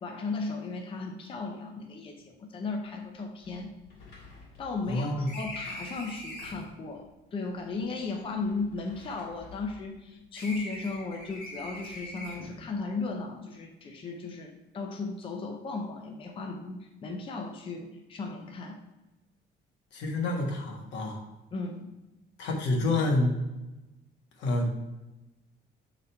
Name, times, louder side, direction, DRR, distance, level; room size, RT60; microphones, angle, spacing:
voice 1, 0.0-3.7 4.6-18.8 21.5-21.9, left 3 dB, 30° left, 3 dB, 0.6 m, -36 dB
sound 1, 2.6-2.7 3.0-3.1 3.4-6.7 7.6-10.0 10.3-12.7, left 1 dB, 60° left, 2.2 m, -44 dB
voice 2, 4.9-5.3 19.9-21.2 22.4-23.4 24.4-24.7, left 2 dB, 80° left, 0 dB, 1.5 m, -28 dB
6.8 x 4.0 x 4.3 m, 1.0 s
cardioid pair, 170°, 18 cm